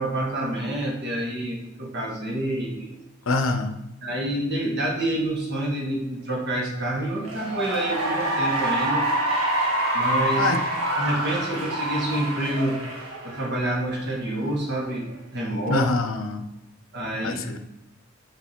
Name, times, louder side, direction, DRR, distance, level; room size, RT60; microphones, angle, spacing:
voice 1, 0.0-2.9 4.0-9.1 9.9-10.5 11.0-12.8 13.2-15.8 16.9-17.4, right 1 dB, 55° right, -1 dB, 1.8 m, -28 dB
voice 2, 3.3-3.8 10.4-10.6 15.7-16.5 17.2-17.6, left 3 dB, 70° left, 7 dB, 0.7 m, -25 dB
Cheering / Applause, 7.1-13.8, right 1 dB, 85° right, 1.5 m, -26 dB
7.2 x 3.8 x 4.5 m, 0.90 s
head